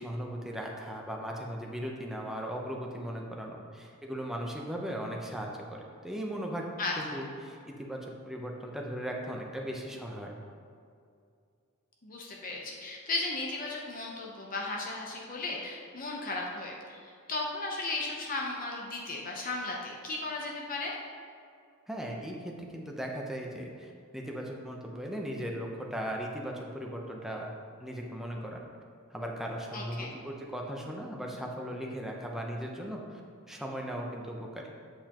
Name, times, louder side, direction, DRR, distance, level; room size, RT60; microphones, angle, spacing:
voice 1, 0.0-6.7 7.0-10.4 21.9-27.5 27.8-28.6 29.1-33.2 33.5-34.7, equal, ahead, -1 dB, 0.7 m, -38 dB
voice 2, 6.8-7.2 12.0-20.9 29.7-30.1, left 2 dB, 40° left, -1 dB, 0.7 m, -35 dB
8.0 x 6.7 x 3.0 m, 2.4 s
head